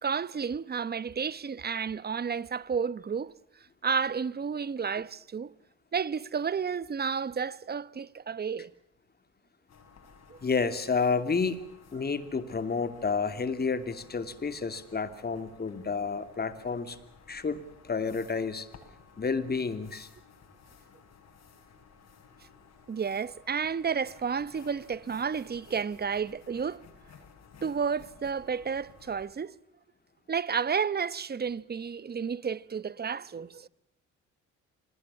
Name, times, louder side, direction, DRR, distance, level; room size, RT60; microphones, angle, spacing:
voice 1, 0.0-3.3 3.8-5.5 5.9-8.7 10.3-10.4 22.9-26.8 27.6-29.5 30.3-33.7, right 6 dB, 30° right, 1.0 m, -31 dB
sound 1, 9.7-29.3, left 5 dB, 60° left, 6.9 m, -56 dB
voice 2, 10.4-11.6 11.9-17.0 17.3-17.6 17.8-18.7 19.2-20.1, left 5 dB, 30° left, 2.9 m, -30 dB
27.0 x 20.0 x 7.1 m
cardioid pair, 90°, 30 cm